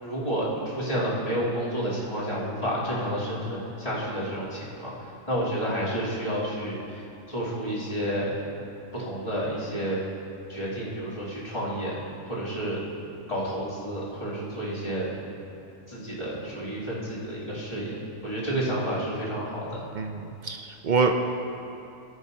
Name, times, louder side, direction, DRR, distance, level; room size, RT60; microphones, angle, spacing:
voice 1, 0.0-4.9 5.3-8.3 8.9-10.0 10.5-12.0 12.3-12.8 13.3-15.1 15.9-18.0 18.2-19.8, right 1 dB, 25° left, -11 dB, 3.2 m, -30 dB
voice 2, 20.0-21.1, right 5 dB, 50° right, 3 dB, 0.6 m, -26 dB
18.5 x 8.9 x 2.8 m, 2.7 s
omnidirectional pair, 1.4 m